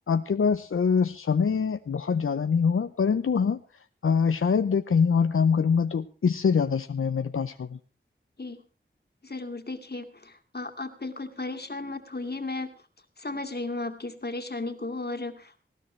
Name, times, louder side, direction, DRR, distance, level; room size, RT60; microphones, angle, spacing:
voice 1, 0.1-3.6 4.0-7.8, left 6 dB, 85° left, 9 dB, 0.6 m, -24 dB
voice 2, 9.2-12.7 13.2-15.6, left 2 dB, 50° left, 6 dB, 2.3 m, -35 dB
19.0 x 16.5 x 3.2 m, 0.35 s
wide cardioid pair, 50°, 21 cm